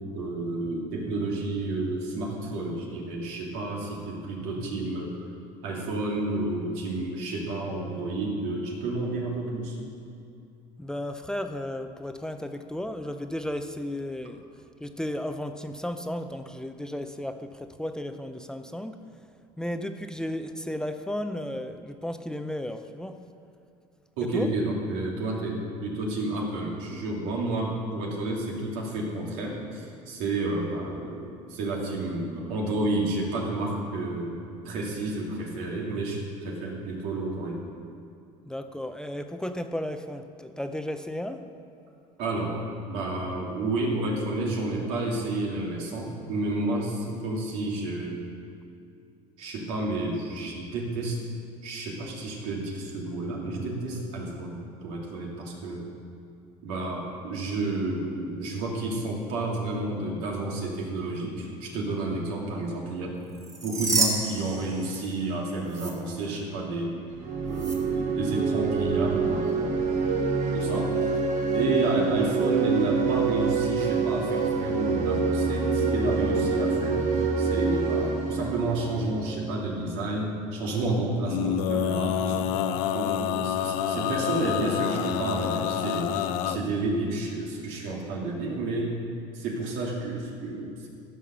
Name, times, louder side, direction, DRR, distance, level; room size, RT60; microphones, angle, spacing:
voice 1, 0.1-5.1 5.6-9.8 24.2-34.4 34.6-37.6 42.2-42.5 42.9-48.2 49.4-51.2 51.6-55.9 56.6-63.2 63.6-66.9 67.5-69.8 70.5-71.1 71.5-77.0 77.4-82.5 82.9-86.1 86.4-88.9 89.3-90.9, right 2 dB, 85° right, -2 dB, 2.6 m, -30 dB
voice 2, 10.8-14.4 14.8-19.0 19.6-23.2 24.2-24.5 38.5-41.5 70.6-70.8 86.5-86.6, left 1 dB, 5° left, 7 dB, 0.5 m, -34 dB
sound 1, 63.3-65.3 65.7-65.9 67.5-67.8, right 3 dB, 25° right, 2.0 m, -29 dB
sound 2, 67.1-79.8, right 4 dB, 55° right, 1.3 m, -26 dB
Male singing, 81.2-86.6, left 9 dB, 85° left, 0.7 m, -28 dB
15.0 x 5.7 x 6.8 m, 2.5 s
cardioid pair, 130°, 15 cm